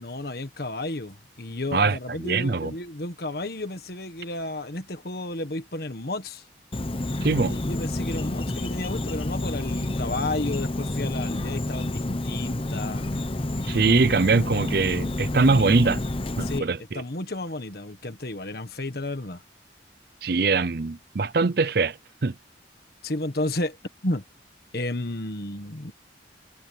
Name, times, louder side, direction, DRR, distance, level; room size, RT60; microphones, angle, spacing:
voice 1, 0.0-6.4 7.3-13.1 16.4-16.7 16.9-19.4 23.0-23.8 24.0-24.2 24.7-25.9, left 2 dB, 55° left, 1.6 m, -32 dB
voice 2, 2.2-2.7 7.2-7.6 13.7-16.0 16.4-17.0 20.2-22.0 22.2-22.3, right 4 dB, 55° right, 0.6 m, -22 dB
Insect, 6.7-16.6, left 1 dB, 30° left, 0.9 m, -29 dB
head